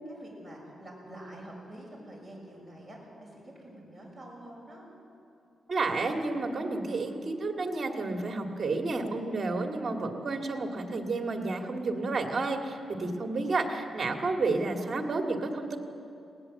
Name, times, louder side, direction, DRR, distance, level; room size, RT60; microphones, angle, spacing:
voice 1, 0.1-4.9, right 1 dB, 5° left, -2 dB, 6.5 m, -47 dB
voice 2, 5.7-15.8, right 3 dB, 35° right, 3 dB, 2.1 m, -31 dB
20.5 x 18.5 x 7.8 m, 2.6 s
wide cardioid pair, 135°, 0 cm